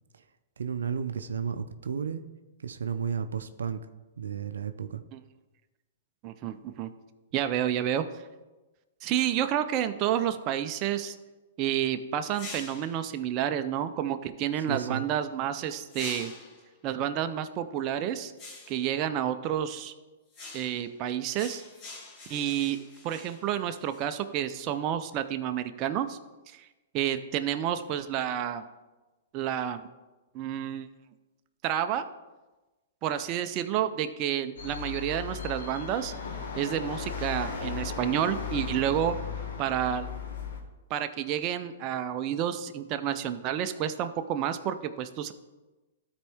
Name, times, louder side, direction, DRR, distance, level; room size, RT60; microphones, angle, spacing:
voice 1, 0.6-2.2 2.6-3.9 4.2-5.0 14.6-15.0, right 7 dB, 90° right, 10 dB, 0.5 m, -33 dB
voice 2, 6.2-6.9 7.3-8.0 9.0-11.2 11.6-16.3 16.8-18.3 18.7-19.9 20.5-21.6 22.3-22.8 23.0-26.2 26.6-26.7 26.9-28.7 29.3-29.9 30.3-30.9 31.6-32.1 33.0-36.1 36.6-39.1 39.6-40.1 40.9-45.3, right 10 dB, 35° right, 8 dB, 0.5 m, -30 dB
sound 1, 12.3-13.0 15.9-16.7 18.4-18.9 20.3-20.9 21.3-24.1, left 3 dB, 30° left, 1.4 m, -45 dB
sound 2, 34.6-40.6, left 5 dB, 75° left, 1.5 m, -36 dB
13.0 x 4.4 x 3.5 m, 1.1 s
hypercardioid pair, 135°, 0 cm